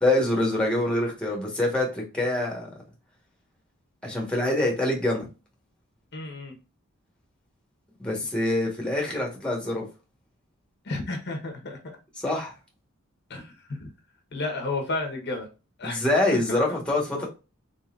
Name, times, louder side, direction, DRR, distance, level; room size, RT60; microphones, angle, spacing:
voice 1, 0.0-2.7 4.0-5.3 8.0-9.9 12.2-12.5 15.8-17.3, left 1 dB, 5° left, -1 dB, 1.3 m, -25 dB
voice 2, 6.1-6.5 10.8-12.0 13.3-13.9 14.3-15.5 15.8-16.0 16.3-16.6 17.2-17.3, left 2 dB, 55° left, 3 dB, 1.1 m, -32 dB
4.0 x 3.8 x 2.5 m, 0.31 s
head